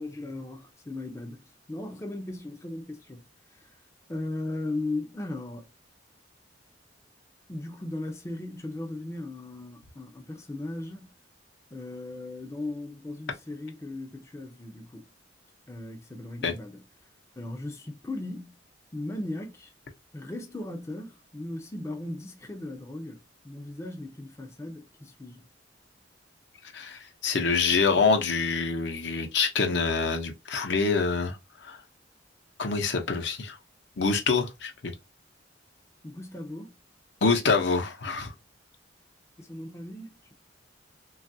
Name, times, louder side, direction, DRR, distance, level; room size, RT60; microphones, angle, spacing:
voice 1, 0.0-3.2 3.5-3.7 4.1-5.7 7.5-11.1 11.7-15.1 15.7-16.8 17.4-18.6 18.9-19.7 20.1-25.5 36.0-36.8 39.4-40.3, left 2 dB, 15° left, 0.4 m, -37 dB
voice 2, 26.7-31.4 31.6-31.8 32.6-33.5 34.0-34.9 37.2-38.3, left 4 dB, 65° left, 0.7 m, -26 dB
3.0 x 2.3 x 2.6 m
head